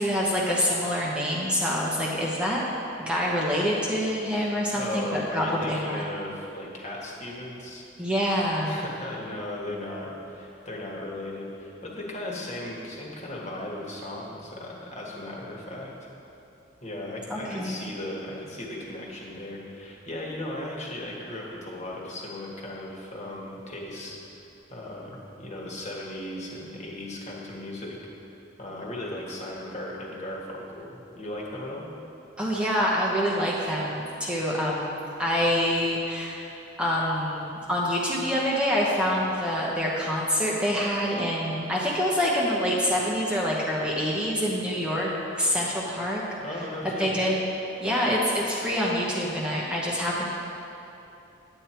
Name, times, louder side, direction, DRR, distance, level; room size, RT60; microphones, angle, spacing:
voice 1, 0.0-2.6 3.0-6.0 8.0-8.8 17.3-17.8 32.4-36.4 36.8-46.2 46.8-47.4 47.8-50.3, equal, 5° right, -5 dB, 1.0 m, -26 dB
voice 2, 4.7-7.9 8.7-15.9 16.8-24.4 24.7-28.0 28.6-31.9 46.4-47.1, left 1 dB, 40° left, -3 dB, 1.7 m, -37 dB
10.0 x 8.5 x 4.5 m, 3.0 s
head